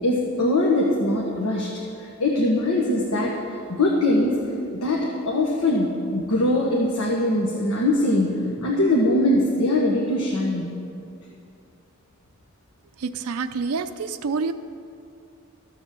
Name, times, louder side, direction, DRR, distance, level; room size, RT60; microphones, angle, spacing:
voice 1, 0.0-1.7 2.0-4.4 4.7-10.7, left 1 dB, 90° left, -3 dB, 1.4 m, -22 dB
voice 2, 13.0-14.5, right 4 dB, 80° right, 8 dB, 0.5 m, -27 dB
14.0 x 7.2 x 6.8 m, 2.5 s
head